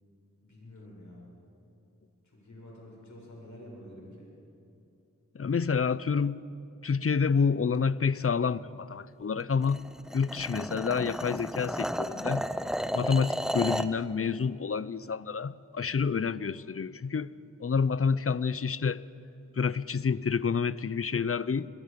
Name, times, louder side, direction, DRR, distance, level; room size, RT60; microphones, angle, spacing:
voice 1, 0.4-1.3 2.2-4.3, left 1 dB, 65° left, 7.6 m, -48 dB
voice 2, 5.3-6.4 6.8-9.8 10.1-12.5 12.9-17.3 17.6-19.0 19.6-21.7, left 5 dB, 45° left, 0.6 m, -28 dB
sound 1, 9.6-14.0, equal, ahead, 0.8 m, -33 dB
26.5 x 22.5 x 5.3 m
cardioid pair, 45°, 31 cm